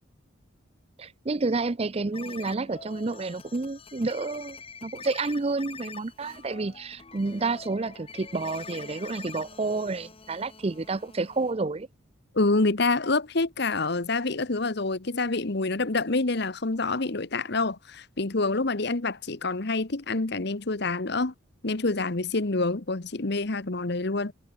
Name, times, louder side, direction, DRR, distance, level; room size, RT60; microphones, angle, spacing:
voice 1, 1.0-11.9, right 3 dB, 30° right, 0.5 m, -30 dB
sound 1, 2.1-11.5, left 5 dB, 30° left, 1.7 m, -45 dB
voice 2, 12.3-21.3 21.6-24.3, left 3 dB, 55° left, 1.2 m, -27 dB
head